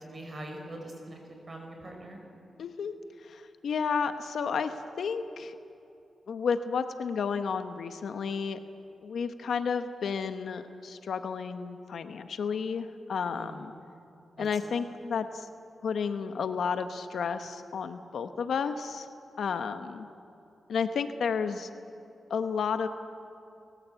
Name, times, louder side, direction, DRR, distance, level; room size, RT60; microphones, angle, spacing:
voice 1, 0.1-1.2 1.5-2.2 13.3-13.6 14.4-14.5, right 1 dB, 40° right, 2 dB, 5.3 m, -42 dB
voice 2, 2.6-2.9 3.2-5.6 6.3-8.6 9.0-13.7 14.4-15.5 15.8-19.1 19.4-20.1 20.7-21.7 22.3-22.9, left 6 dB, 75° left, 9 dB, 1.0 m, -32 dB
29.0 x 14.5 x 8.2 m, 2.8 s
cardioid pair, 70°, 0 cm